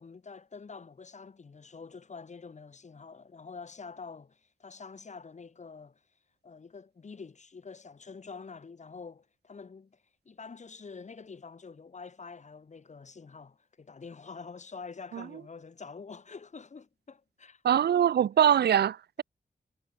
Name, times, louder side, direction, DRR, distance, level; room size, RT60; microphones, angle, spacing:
voice 1, 0.0-6.0 6.4-17.6, left 5 dB, 45° left, 2.3 m, -46 dB
voice 2, 17.6-19.2, right 9 dB, 85° right, 0.5 m, -23 dB
wide cardioid pair, 135°, 17 cm